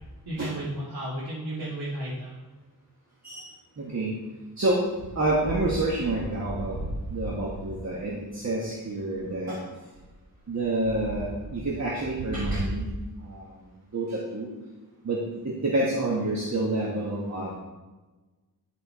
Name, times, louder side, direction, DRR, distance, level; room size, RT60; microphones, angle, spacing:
voice 1, 0.3-2.4, right 1 dB, 85° right, -8 dB, 2.0 m, -33 dB
voice 2, 3.8-4.1 4.6-4.8 5.1-6.8 7.1-9.6 10.5-12.8 13.3-13.4 13.9-14.5 15.0-15.2 15.6-17.5, right 2 dB, 45° right, -4 dB, 1.3 m, -28 dB
10.5 x 4.5 x 4.2 m, 1.2 s
wide cardioid pair, 110°, 38 cm